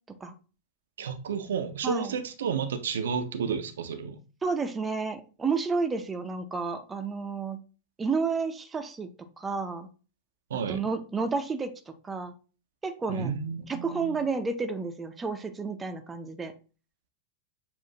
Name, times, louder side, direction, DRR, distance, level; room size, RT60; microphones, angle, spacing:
voice 1, 1.0-4.2 10.5-10.8 13.1-14.2, right 6 dB, 65° right, 0.5 m, -31 dB
voice 2, 1.8-2.2 4.4-7.6 8.0-9.1 9.4-9.9 10.7-11.7 12.0-12.3 12.8-13.3 13.7-16.5, right 4 dB, 15° right, 0.6 m, -31 dB
7.0 x 2.5 x 2.8 m
figure-of-eight pair, 90°, 0 cm